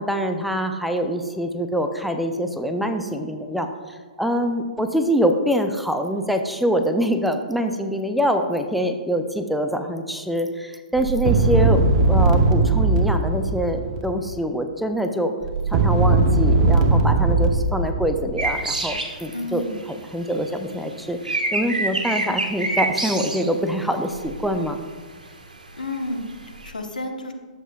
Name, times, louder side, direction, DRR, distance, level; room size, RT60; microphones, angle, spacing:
voice 1, 0.0-3.7 4.2-11.8 12.1-15.4 15.7-19.6 20.1-24.8, equal, ahead, 6 dB, 0.5 m, -24 dB
sound 1, 11.0-14.2 15.4-18.7, right 3 dB, 45° right, 0.8 m, -19 dB
sound 2, 18.4-20.0 20.3-24.7 25.3-25.4 25.9-26.7, right 2 dB, 85° right, 1.2 m, -27 dB
voice 2, 19.3-19.8 25.7-27.3, left 1 dB, 85° left, 3 dB, 1.1 m, -31 dB
12.0 x 7.3 x 2.3 m, 1.5 s
figure-of-eight pair, 125°, 4 cm